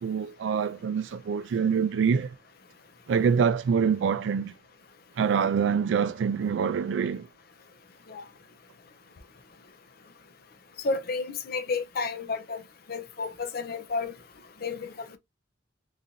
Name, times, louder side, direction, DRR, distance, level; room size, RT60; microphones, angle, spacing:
voice 1, 0.0-2.3 3.1-4.5 5.2-7.3, right 6 dB, 80° right, 0.3 m, -25 dB
voice 2, 10.8-12.6 12.9-14.1 14.6-15.2, left 4 dB, 55° left, 0.6 m, -31 dB
3.8 x 2.5 x 2.8 m
head